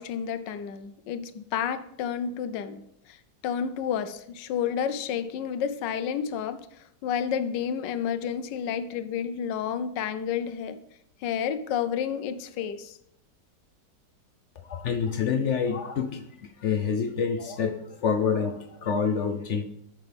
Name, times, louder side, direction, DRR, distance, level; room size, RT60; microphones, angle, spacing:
voice 1, 0.0-3.2 3.4-6.7 7.0-10.8 11.2-13.0, left 8 dB, 90° left, 12 dB, 1.3 m, -30 dB
voice 2, 14.6-19.6, left 6 dB, 65° left, 8 dB, 0.7 m, -27 dB
12.5 x 6.1 x 3.4 m, 0.74 s
omnidirectional pair, 1.9 m